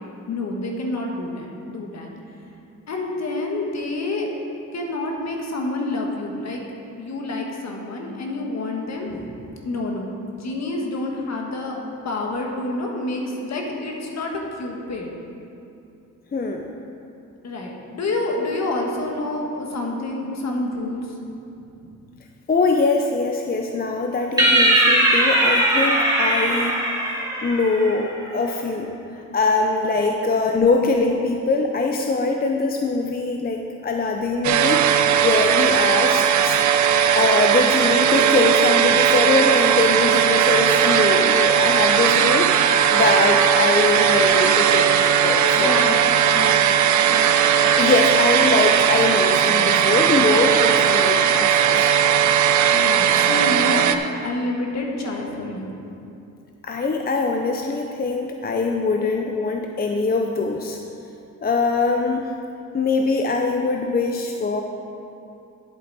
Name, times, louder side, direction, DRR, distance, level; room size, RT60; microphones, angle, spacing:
voice 1, 0.3-2.1 2.9-4.3 4.7-6.6 6.9-9.3 9.6-10.1 10.4-11.8 12.0-15.1 17.4-21.1 45.5-47.6 52.7-53.9 54.2-55.7, left 2 dB, 55° left, 0 dB, 1.6 m, -28 dB
voice 2, 16.3-16.7 22.5-26.7 27.4-29.0 29.3-36.6 37.1-45.8 47.8-51.9 56.6-60.8 61.4-62.3 62.7-64.6, left 3 dB, 30° left, 2 dB, 0.6 m, -22 dB
sound 1, 24.4-27.9, right 1 dB, 10° right, 1.8 m, -19 dB
sound 2, 34.4-54.0, right 8 dB, 65° right, 0.5 m, -18 dB
10.5 x 8.0 x 4.1 m, 2.7 s
cardioid pair, 110°, 32 cm